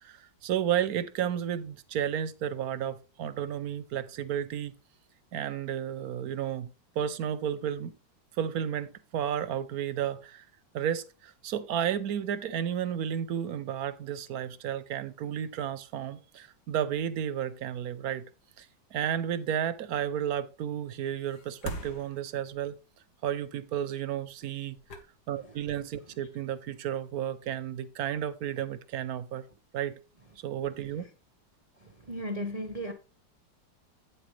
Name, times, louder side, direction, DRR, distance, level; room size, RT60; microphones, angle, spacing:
voice 1, 0.0-4.7 5.3-6.7 7.0-8.0 8.3-10.4 10.7-18.2 18.6-22.7 23.2-25.0 25.3-29.4 29.7-30.0 30.4-31.1, right 9 dB, 70° right, 1.0 m, -32 dB
sound 1, 21.2-22.8 24.4-24.5 24.8-25.7 26.1-26.3, equal, 60° left, 1.9 m, -41 dB
voice 2, 31.8-32.9, equal, 45° right, 0.4 m, -35 dB
8.7 x 7.7 x 3.2 m
omnidirectional pair, 2.0 m